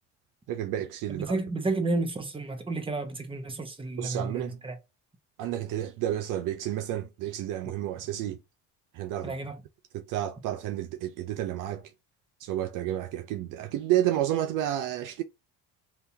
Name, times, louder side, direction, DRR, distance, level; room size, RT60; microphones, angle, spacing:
voice 1, 0.5-1.4 4.0-4.6 5.4-8.4 8.9-9.3 9.9-11.9 12.4-15.2, right 12 dB, 60° right, 0.5 m, -30 dB
voice 2, 1.1-4.7 9.2-9.6, right 2 dB, 15° right, 1.1 m, -31 dB
3.4 x 2.9 x 2.7 m
supercardioid pair, 80°, 35 cm